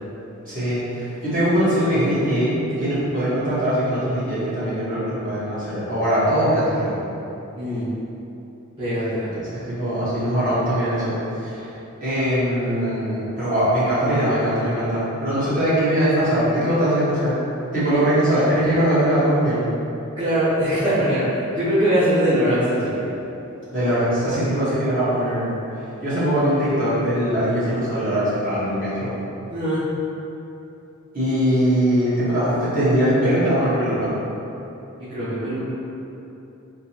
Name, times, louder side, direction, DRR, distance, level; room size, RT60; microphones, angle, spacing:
voice 1, 0.5-7.0 9.7-11.7 12.0-17.3 17.7-19.6 23.7-25.5 26.0-29.1 31.1-34.1, equal, 40° right, -13 dB, 1.4 m, -21 dB
voice 2, 7.5-7.9 8.8-9.3 20.2-21.2 21.5-23.1 29.5-29.8 35.0-35.6, equal, 20° right, -17 dB, 1.0 m, -21 dB
3.8 x 2.9 x 2.9 m, 2.9 s
head